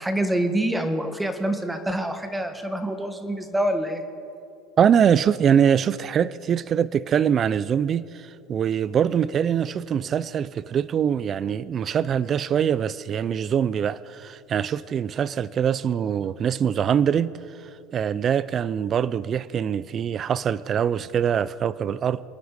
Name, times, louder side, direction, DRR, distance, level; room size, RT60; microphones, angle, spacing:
voice 1, 0.0-4.0, right 1 dB, 5° right, 1.4 m, -26 dB
voice 2, 4.8-17.3 17.9-22.2, right 8 dB, 35° right, 0.4 m, -23 dB
27.5 x 9.5 x 4.9 m
supercardioid pair, 125°, 0 cm